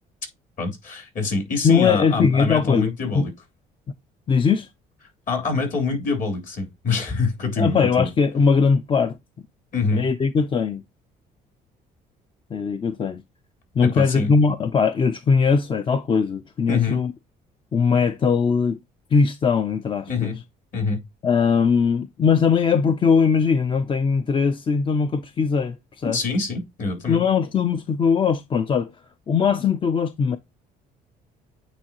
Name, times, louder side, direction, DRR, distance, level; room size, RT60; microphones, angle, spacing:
voice 1, 0.6-3.3 5.3-8.1 9.7-10.1 13.8-14.3 16.7-17.0 20.1-20.4 20.7-21.0 26.1-27.2, left 4 dB, 50° left, 3.2 m, -25 dB
voice 2, 1.6-3.3 4.3-4.7 7.6-9.1 9.9-10.8 12.5-13.2 13.8-17.1 17.7-18.8 19.1-20.3 21.2-26.2 27.1-28.9 29.3-30.4, left 5 dB, 30° left, 0.5 m, -20 dB
8.9 x 3.8 x 2.9 m
cardioid pair, 110°, 17 cm